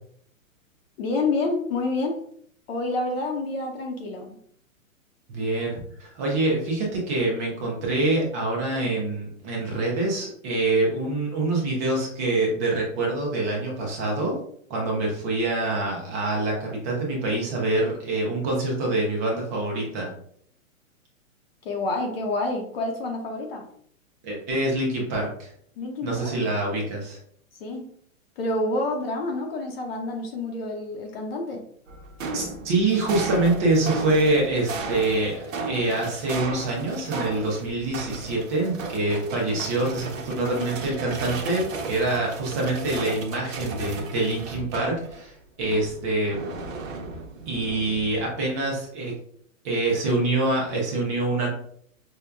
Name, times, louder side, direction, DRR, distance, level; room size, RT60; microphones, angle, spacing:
voice 1, 1.0-2.2 2.7-4.4 21.6-23.7 25.8-26.3 27.6-27.9 28.4-31.6, left 2 dB, 45° left, 2 dB, 0.7 m, -28 dB
voice 2, 5.3-14.4 14.7-20.1 24.2-25.5 26.0-27.2 32.3-46.4 47.5-49.1 49.6-51.5, right 2 dB, 15° right, -2 dB, 0.3 m, -25 dB
sound 1, 31.9-45.2 45.6-48.3, right 3 dB, 70° right, 0.8 m, -35 dB
5.3 x 2.2 x 2.3 m, 0.63 s
hypercardioid pair, 130°, 41 cm